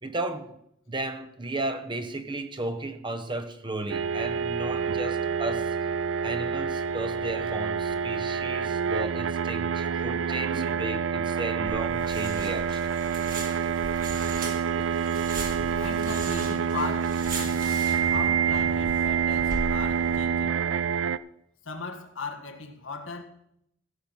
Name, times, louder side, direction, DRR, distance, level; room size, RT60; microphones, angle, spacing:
voice 1, 0.0-0.6 0.9-5.8 6.2-12.9, right 2 dB, 25° right, 1.0 m, -34 dB
sound 1, 3.9-21.2, right 7 dB, 80° right, 0.5 m, -27 dB
sound 2, 11.7-20.2, right 2 dB, 45° right, 2.5 m, -38 dB
voice 2, 15.8-17.6 18.1-20.6 21.6-23.2, left 3 dB, 90° left, 1.7 m, -37 dB
16.0 x 5.9 x 7.2 m
head